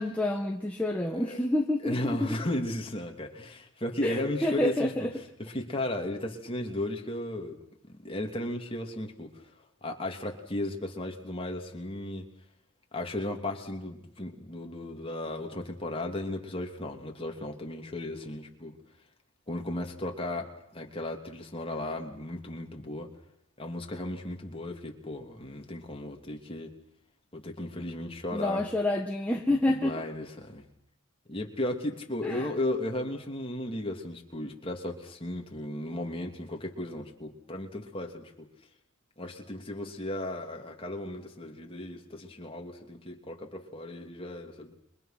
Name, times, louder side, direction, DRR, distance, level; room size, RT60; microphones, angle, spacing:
voice 1, 0.0-2.3 4.0-5.1 28.3-30.0 32.2-32.5, left 1 dB, 5° left, 0 dB, 1.4 m, -28 dB
voice 2, 1.0-1.4 1.8-4.9 5.4-9.5 9.8-12.3 12.9-18.8 19.5-23.1 23.6-26.7 27.3-28.6 29.7-30.6 31.3-38.5 39.2-44.7, left 1 dB, 25° left, 2 dB, 3.0 m, -35 dB
29.0 x 23.5 x 6.0 m, 0.76 s
head